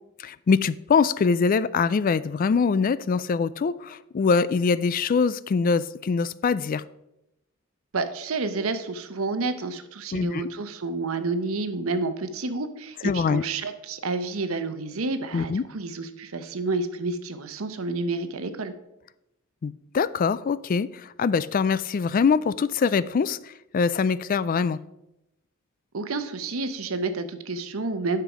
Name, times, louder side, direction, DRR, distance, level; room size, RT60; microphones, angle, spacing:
voice 1, 0.2-6.8 10.1-10.5 13.0-13.4 15.3-15.6 19.6-20.9 21.2-23.4 23.7-24.8, left 5 dB, 40° left, 17 dB, 0.3 m, -23 dB
voice 2, 7.9-18.7 25.9-28.2, right 3 dB, 85° right, 10 dB, 0.8 m, -29 dB
10.0 x 5.8 x 4.9 m, 0.89 s
head